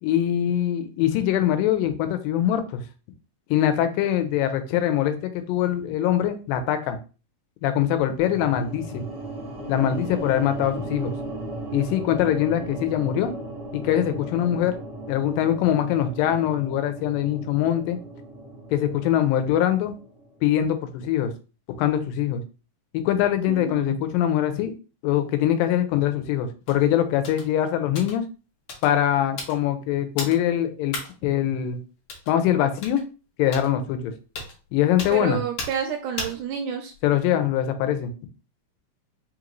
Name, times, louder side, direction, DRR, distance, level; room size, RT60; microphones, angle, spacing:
voice 1, 0.0-2.8 3.5-7.0 7.6-9.0 9.7-11.1 11.7-13.3 13.7-14.8 15.1-18.0 18.7-20.0 20.4-21.3 21.8-22.4 22.9-24.7 25.0-28.2 28.8-31.0 31.2-31.8 32.3-33.0 33.4-34.1 34.7-35.4 37.0-38.1, left 11 dB, 85° left, 8 dB, 2.3 m, -23 dB
sound 1, 8.2-20.4, right 2 dB, 60° right, 0.3 m, -36 dB
voice 2, 23.5-24.0 35.1-36.9, right 7 dB, 80° right, 4 dB, 1.8 m, -29 dB
sound 2, 26.7-26.8 27.2-27.5 27.9-28.2 28.7-28.9 29.4-29.6 30.2-30.4 30.9-31.1 32.1-32.3 32.8-33.0 33.5-33.7 34.3-34.5 35.0-35.2 35.6-35.8 36.2-36.4 36.9-37.2, left 3 dB, 65° left, 1.5 m, -34 dB
5.3 x 2.5 x 3.0 m, 0.34 s
omnidirectional pair, 3.9 m